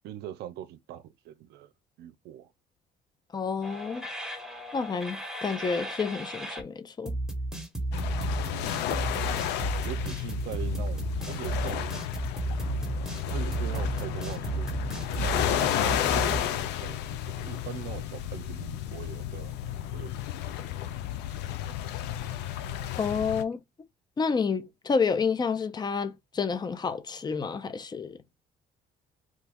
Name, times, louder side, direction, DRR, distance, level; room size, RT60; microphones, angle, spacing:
voice 1, 0.0-1.7 2.0-2.5 7.9-8.5 9.8-12.0 13.3-14.7 15.2-15.5 15.8-19.6 19.9-20.1, right 11 dB, 80° right, 0.5 m, -41 dB
voice 2, 3.3-4.0 4.7-7.2 23.0-23.6 24.2-28.2, left 5 dB, 25° left, 0.6 m, -29 dB
sound 1, 3.6-6.6 7.1-16.4, right 2 dB, 5° right, 1.3 m, -33 dB
sound 2, 7.9-23.4, left 11 dB, 85° left, 0.5 m, -32 dB
3.2 x 2.3 x 3.4 m
cardioid pair, 110°, 17 cm